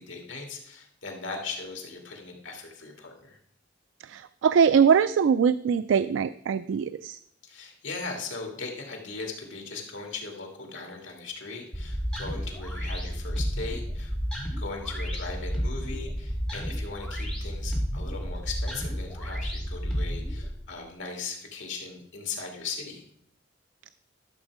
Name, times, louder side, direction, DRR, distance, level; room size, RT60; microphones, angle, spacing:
voice 1, 0.0-3.4 7.4-14.1 14.6-23.0, left 4 dB, 80° left, 2 dB, 2.4 m, -38 dB
voice 2, 4.0-7.2, right 7 dB, 80° right, 14 dB, 0.3 m, -22 dB
sound 1, 11.7-20.5, equal, 5° left, 2.5 m, -31 dB
12.5 x 7.2 x 4.8 m, 0.69 s
head